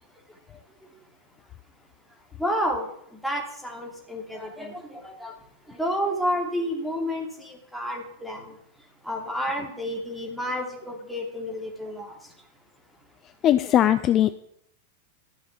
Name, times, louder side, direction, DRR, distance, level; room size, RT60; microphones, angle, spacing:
voice 1, 2.4-5.3 5.7-8.5 9.0-12.2, equal, ahead, 0 dB, 2.8 m, -30 dB
voice 2, 13.4-14.3, left 11 dB, 30° left, 13 dB, 0.4 m, -19 dB
13.0 x 6.2 x 7.0 m, 0.73 s
figure-of-eight pair, 90°, 0 cm